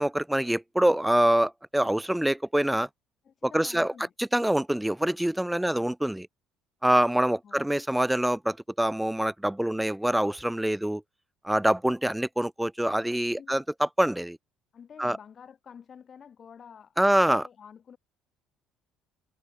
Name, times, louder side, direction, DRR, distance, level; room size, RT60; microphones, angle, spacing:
voice 1, 0.0-2.9 3.5-3.9 4.2-6.3 6.8-11.0 11.4-14.4 15.0-15.2 17.0-17.4, right 1 dB, 5° right, 1.1 m, -25 dB
voice 2, 3.2-4.1 5.6-5.9 7.4-7.6 13.4-13.7 14.7-17.1 17.4-18.0, left 7 dB, 40° left, 7.9 m, -49 dB
figure-of-eight pair, 55°, 0 cm